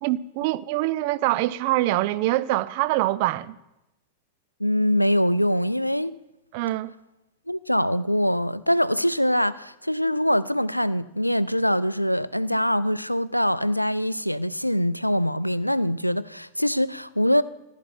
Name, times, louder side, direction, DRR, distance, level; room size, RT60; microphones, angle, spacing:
voice 1, 0.0-3.6 6.5-6.9, right 16 dB, 45° right, 0.5 m, -24 dB
voice 2, 4.6-6.2 7.5-17.4, equal, 90° left, 0.3 m, -23 dB
14.5 x 11.5 x 4.3 m
figure-of-eight pair, 90°, 0 cm